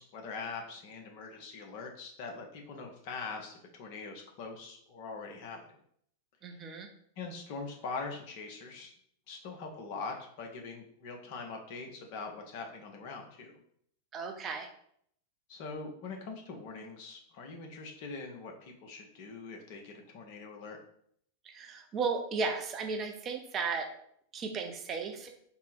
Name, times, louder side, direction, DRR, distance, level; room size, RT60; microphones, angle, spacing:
voice 1, 0.0-5.6 7.2-8.9 9.3-13.5 15.5-20.8, left 4 dB, 45° left, 2 dB, 0.7 m, -42 dB
voice 2, 6.4-6.9 14.1-14.7 21.4-23.9 24.3-25.3, right 4 dB, 30° right, 4 dB, 0.6 m, -35 dB
3.6 x 2.0 x 4.1 m, 0.66 s
figure-of-eight pair, 90°, 0 cm